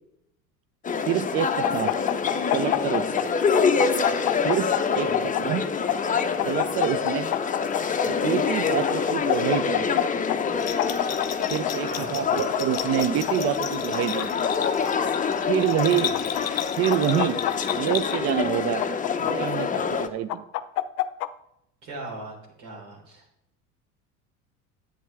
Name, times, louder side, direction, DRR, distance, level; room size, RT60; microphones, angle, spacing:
sound 1, 0.8-20.1, left 5 dB, 15° left, 0.7 m, -26 dB
voice 1, 1.1-1.9 2.5-3.2 4.4-5.7 6.5-7.3 8.1-9.9 11.5-14.4 15.5-16.3 16.8-17.4 17.7-18.8 19.2-20.4, right 11 dB, 35° right, 14 dB, 0.5 m, -27 dB
sound 2, 1.6-3.3 3.5-5.4 5.9-8.1 8.9-10.0 10.3-10.4 10.8-11.7 12.3-13.4 13.9-14.9 15.7-16.6 16.9-18.2 18.8-19.8 20.3-21.3, left 15 dB, 70° left, 0.7 m, -26 dB
Bell, 10.6-18.5, left 10 dB, 35° left, 1.1 m, -35 dB
voice 2, 11.9-12.2 21.8-23.2, right 2 dB, 60° right, -1 dB, 3.7 m, -39 dB
10.5 x 8.5 x 3.3 m, 0.81 s
hypercardioid pair, 70°, 46 cm